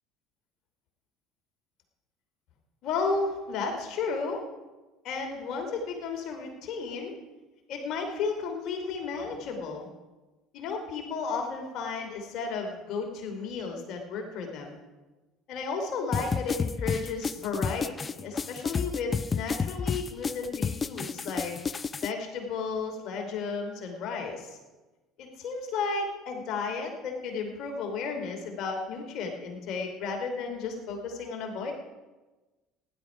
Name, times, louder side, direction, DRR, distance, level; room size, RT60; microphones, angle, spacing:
voice 1, 2.8-4.4 5.0-7.1 7.7-9.9 10.5-14.8 15.5-21.5 22.0-24.6 25.2-31.7, left 4 dB, 60° left, 3 dB, 2.9 m, -33 dB
sound 1, 16.1-22.1, left 5 dB, 30° left, 0.4 m, -31 dB
16.0 x 11.0 x 5.1 m, 1.2 s
hypercardioid pair, 70°, 0 cm